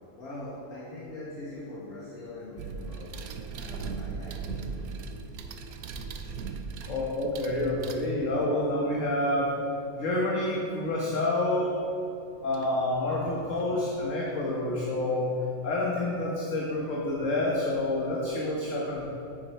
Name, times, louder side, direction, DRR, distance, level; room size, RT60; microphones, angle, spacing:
voice 1, 0.2-3.2 3.6-4.7 6.8-6.9 7.7-7.8, left 2 dB, 90° left, -8 dB, 2.4 m, -42 dB
sound 1, 2.6-8.5 11.0-11.1 12.5-12.7 13.1-14.1, right 5 dB, 80° right, 1.2 m, -38 dB
voice 2, 6.9-9.6 9.9-11.8 12.4-15.4 15.6-19.0, left 1 dB, 60° left, -4 dB, 1.7 m, -28 dB
9.7 x 9.5 x 4.6 m, 2.9 s
omnidirectional pair, 1.5 m